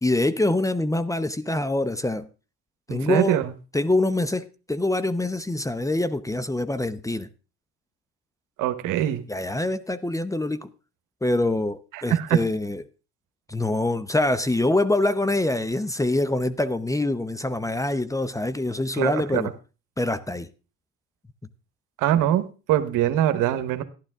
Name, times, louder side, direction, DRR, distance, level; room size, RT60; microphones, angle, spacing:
voice 1, 0.0-2.3 2.9-3.4 3.7-7.3 9.3-10.7 11.2-12.8 13.5-19.5 20.0-20.5, left 2 dB, 10° left, 0.7 m, -25 dB
voice 2, 2.9-3.5 8.6-9.2 11.9-12.4 19.0-19.4 22.0-23.8, right 12 dB, 75° right, 1.1 m, -23 dB
12.0 x 11.5 x 3.6 m
supercardioid pair, 65°, 32 cm